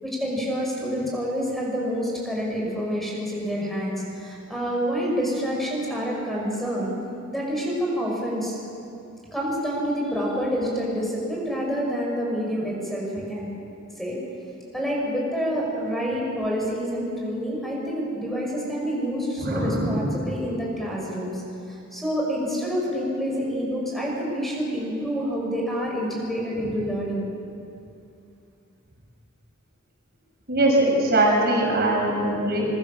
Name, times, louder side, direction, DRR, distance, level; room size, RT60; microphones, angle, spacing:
voice 1, 0.0-6.9 7.3-8.6 9.3-13.5 14.0-14.2 14.7-21.4 21.9-27.3, equal, ahead, -3 dB, 5.6 m, -27 dB
voice 2, 19.4-20.1 30.5-32.7, right 1 dB, 50° right, -1 dB, 6.1 m, -21 dB
25.5 x 23.0 x 7.2 m, 2.6 s
head